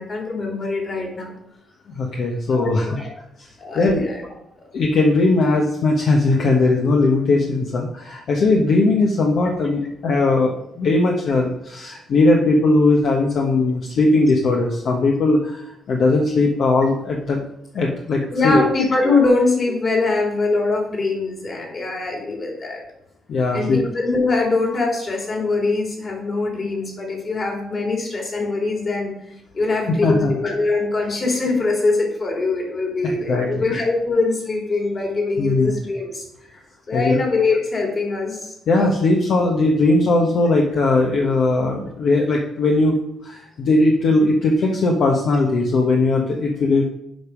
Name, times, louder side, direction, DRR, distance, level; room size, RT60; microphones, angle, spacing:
voice 1, 0.0-1.3 2.5-3.1 3.6-4.2 18.3-22.8 23.5-36.2 36.9-38.5, left 3 dB, 40° left, -1 dB, 3.3 m, -22 dB
voice 2, 1.9-2.9 3.4-4.1 4.7-17.4 17.7-18.7 23.3-23.8 30.0-30.3 33.0-33.7 35.4-35.7 36.9-37.2 38.7-46.9, left 2 dB, 65° left, 0 dB, 1.2 m, -19 dB
7.8 x 5.3 x 5.0 m, 0.78 s
cardioid pair, 90°, 0 cm